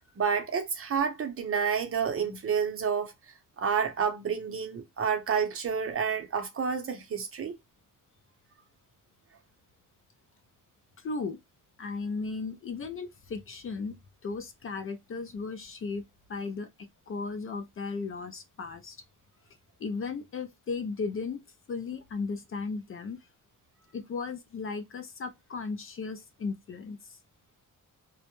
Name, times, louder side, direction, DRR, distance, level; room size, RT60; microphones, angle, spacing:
voice 1, 0.2-3.1 3.6-7.6, right 6 dB, 40° right, 0.6 m, -29 dB
voice 2, 11.0-11.4 11.8-13.9 14.2-16.0 16.3-19.0 19.8-21.4 21.7-23.2 23.9-27.2, left 4 dB, 40° left, 0.4 m, -36 dB
2.2 x 2.1 x 2.8 m
wide cardioid pair, 130°, 33 cm